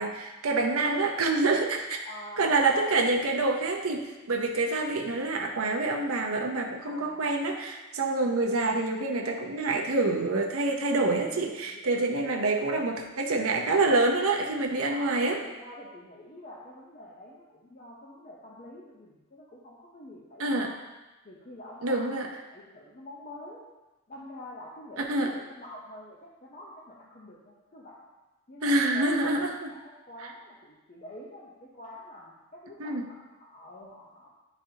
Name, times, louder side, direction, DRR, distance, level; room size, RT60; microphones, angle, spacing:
voice 1, 0.0-2.1 2.4-15.4 20.4-20.7 21.8-22.3 25.0-25.3 28.6-29.7 32.8-33.1, right 2 dB, 70° right, 1 dB, 0.7 m, -27 dB
voice 2, 2.0-3.0 6.8-7.3 11.3-12.9 14.9-20.8 21.2-23.6 24.1-28.0 28.5-34.3, left 1 dB, 35° left, -5 dB, 0.8 m, -47 dB
10.0 x 4.1 x 2.8 m, 1.1 s
head